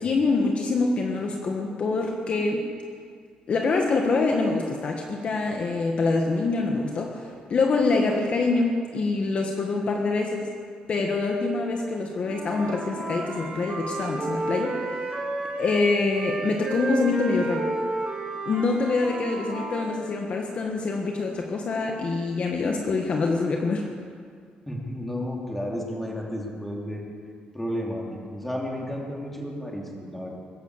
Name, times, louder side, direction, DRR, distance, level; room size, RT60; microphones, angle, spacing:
voice 1, 0.0-2.6 3.5-10.5 10.9-15.2 15.6-17.7 18.4-23.8, left 3 dB, 45° left, 2 dB, 1.4 m, -25 dB
Wind instrument woodwind instrument, 12.2-15.9 16.1-20.0, right 2 dB, 40° right, 3.0 m, -32 dB
voice 2, 24.7-27.0 27.5-30.4, equal, 5° left, -1 dB, 2.8 m, -32 dB
21.0 x 8.3 x 8.2 m, 2.1 s
cardioid pair, 135°, 3 cm